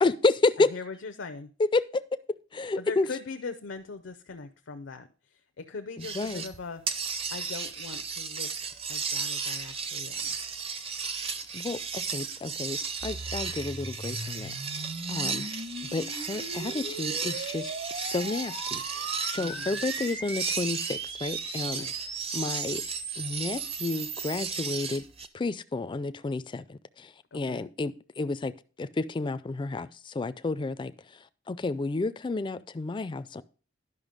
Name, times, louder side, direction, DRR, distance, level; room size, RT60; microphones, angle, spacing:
voice 1, 0.0-0.7 1.6-2.0 2.5-3.1 6.0-6.4 11.5-15.5 15.9-21.9 22.3-22.8 23.2-25.0 25.3-28.5 28.8-33.4, left 3 dB, 25° left, 0.3 m, -31 dB
voice 2, 0.7-1.5 2.8-10.4 19.3-19.8 21.7-21.9 27.3-27.7, left 4 dB, 80° left, 0.6 m, -40 dB
sound 1, 6.0-6.6 6.9-25.3, right 5 dB, 30° right, 0.6 m, -35 dB
sound 2, 13.0-24.4, right 4 dB, 60° right, 1.4 m, -38 dB
11.0 x 5.7 x 5.1 m
head